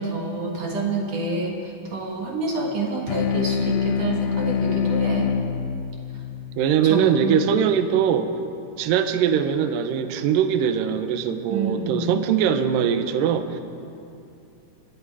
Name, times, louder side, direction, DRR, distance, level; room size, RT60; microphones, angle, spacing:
voice 1, 0.0-5.3 6.8-7.6 11.5-12.1, right 3 dB, 55° right, -1 dB, 2.6 m, -28 dB
sound 1, 3.1-7.9, left 7 dB, 70° left, 1.8 m, -26 dB
voice 2, 6.6-8.3 8.8-13.6, right 8 dB, 80° right, 8 dB, 2.3 m, -21 dB
26.0 x 9.7 x 4.8 m, 2.6 s
omnidirectional pair, 4.1 m